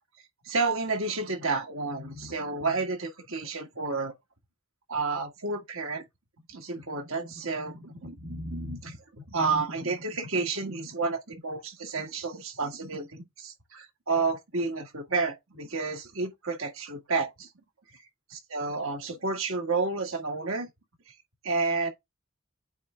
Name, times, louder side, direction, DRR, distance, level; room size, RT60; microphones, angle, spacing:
voice 1, 0.5-4.1 4.9-6.0 6.5-17.5 18.5-20.7 21.4-21.9, right 3 dB, 85° right, 1.7 m, -31 dB
8.3 x 3.3 x 3.5 m
head